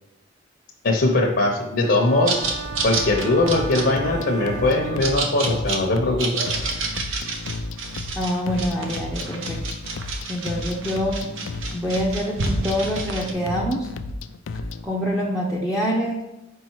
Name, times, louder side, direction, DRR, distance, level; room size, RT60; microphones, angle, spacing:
voice 1, 0.8-2.3 2.8-6.3, left 2 dB, 60° left, 1 dB, 0.8 m, -20 dB
sound 1, 1.8-5.7, right 6 dB, 50° right, 0.4 m, -36 dB
sound 2, 2.3-13.3, right 3 dB, 90° right, 1.0 m, -30 dB
sound 3, 2.8-14.9, left 3 dB, 80° left, 0.4 m, -33 dB
voice 2, 8.1-9.6 10.3-11.2 11.7-13.9 14.8-16.2, equal, 5° right, -3 dB, 0.6 m, -25 dB
5.5 x 5.1 x 4.6 m, 0.93 s
head